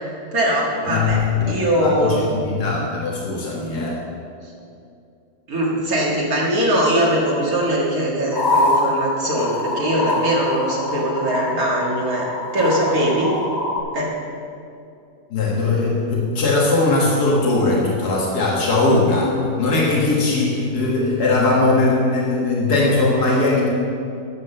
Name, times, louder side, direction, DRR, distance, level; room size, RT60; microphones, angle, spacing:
voice 1, 0.3-1.2 1.5-2.3 4.4-4.5 5.5-13.3 13.9-14.1, right 1 dB, 70° right, -4 dB, 2.2 m, -21 dB
voice 2, 0.9-4.0 15.3-23.7, left 3 dB, 85° left, -4 dB, 2.2 m, -20 dB
sound 1, 8.3-13.8, left 2 dB, 55° right, 3.6 m, -24 dB
12.0 x 7.8 x 6.5 m, 2.6 s
omnidirectional pair, 1.6 m